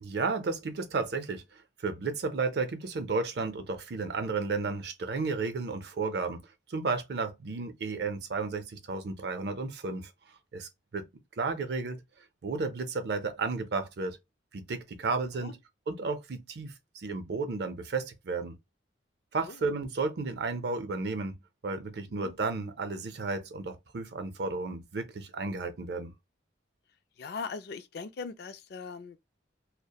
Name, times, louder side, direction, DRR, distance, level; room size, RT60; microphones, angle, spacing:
voice 1, 0.0-6.4 6.7-10.1 10.5-11.1 11.4-12.0 12.4-14.2 14.5-15.5 15.9-18.6 19.3-21.4 21.6-26.1, right 4 dB, 55° right, 0.5 m, -33 dB
voice 2, 27.2-29.2, left 5 dB, 55° left, 0.3 m, -40 dB
2.8 x 2.0 x 2.2 m
head